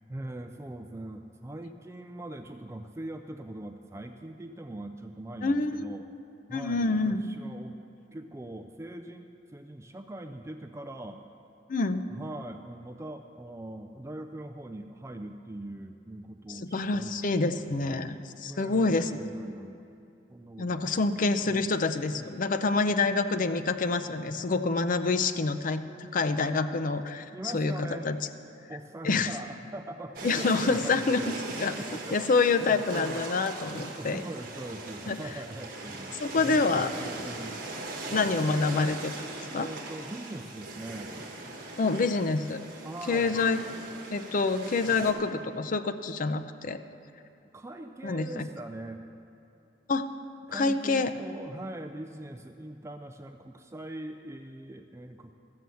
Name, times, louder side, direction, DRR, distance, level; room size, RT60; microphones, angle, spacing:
voice 1, 0.1-6.0 6.5-7.8 8.1-11.2 12.1-18.1 18.5-19.8 20.3-21.7 22.1-22.5 27.3-28.1 28.7-32.2 32.6-33.3 33.7-36.6 36.9-37.6 38.1-38.8 39.5-41.1 41.8-42.0 42.8-43.4 47.5-49.1 50.5-55.3, right 1 dB, 15° right, 5 dB, 0.4 m, -42 dB
voice 2, 5.4-5.9 6.5-7.3 11.7-12.0 16.5-19.2 20.6-27.2 27.5-28.2 29.0-29.4 30.2-31.7 32.1-34.2 35.1-35.2 36.2-36.9 38.1-39.1 39.5-39.7 41.8-42.6 43.1-43.6 44.1-46.8 48.0-48.5 49.9-50.1 50.5-51.1, left 3 dB, 45° left, 8 dB, 0.5 m, -27 dB
sound 1, 30.2-45.1, right 2 dB, 55° right, 1.6 m, -40 dB
14.0 x 7.7 x 6.9 m, 2.7 s
head